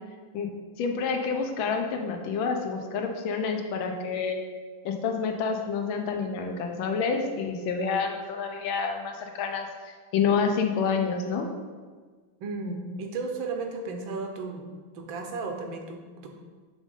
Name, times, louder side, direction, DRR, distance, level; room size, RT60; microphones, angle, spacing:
voice 1, 0.8-4.4 4.8-9.7 10.1-11.5, left 5 dB, 75° left, 4 dB, 1.5 m, -28 dB
voice 2, 12.4-16.3, right 3 dB, 75° right, 3 dB, 1.5 m, -34 dB
6.2 x 3.7 x 5.3 m, 1.5 s
omnidirectional pair, 2.2 m